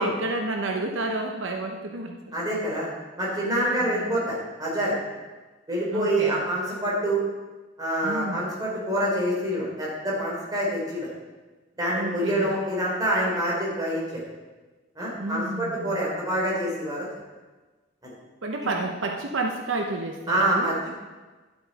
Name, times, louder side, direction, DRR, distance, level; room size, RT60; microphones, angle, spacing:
voice 1, 0.0-2.4 3.8-4.2 5.9-6.4 8.0-8.5 11.9-12.5 15.2-16.0 18.4-20.7, right 2 dB, 80° right, 3 dB, 0.9 m, -30 dB
voice 2, 2.3-2.9 3.2-4.9 5.7-7.2 7.8-11.1 11.8-14.2 15.0-17.1 18.0-18.1 20.3-21.0, right 1 dB, 20° right, -5 dB, 3.5 m, -26 dB
12.0 x 8.0 x 4.1 m, 1.3 s
head